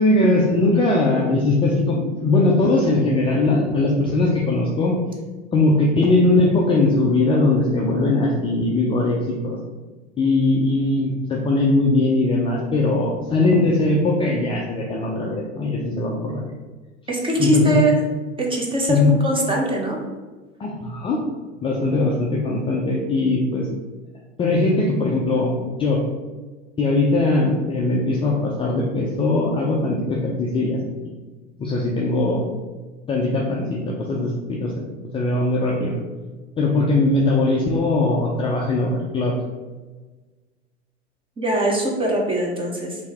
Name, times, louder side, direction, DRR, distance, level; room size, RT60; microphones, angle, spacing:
voice 1, 0.0-5.0 5.5-9.6 10.2-16.4 17.4-17.8 18.9-19.1 20.6-21.2 21.6-23.7 24.4-26.0 26.8-30.8 31.6-32.4 33.1-34.8 35.1-36.0 36.6-39.4, left 2 dB, 15° left, -2 dB, 0.5 m, -20 dB
voice 2, 17.1-17.9 18.4-20.0 41.4-43.0, right 1 dB, 15° right, 0 dB, 0.9 m, -21 dB
4.3 x 2.8 x 3.4 m, 1.3 s
hypercardioid pair, 90°, 35 cm